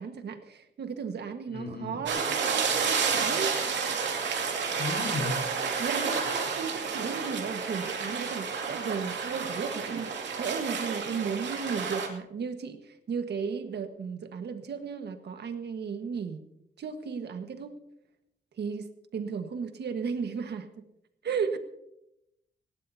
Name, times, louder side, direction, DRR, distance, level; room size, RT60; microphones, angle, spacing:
voice 1, 0.0-3.5 5.8-16.4 16.8-17.7 18.6-20.8 21.2-21.6, right 6 dB, 70° right, 7 dB, 1.5 m, -35 dB
voice 2, 1.5-2.0 4.7-5.3, left 3 dB, 65° left, 1 dB, 4.5 m, -34 dB
sound 1, 2.1-12.1, right 5 dB, 85° right, 2.5 m, -30 dB
19.5 x 17.5 x 2.8 m, 0.82 s
wide cardioid pair, 115°, 18 cm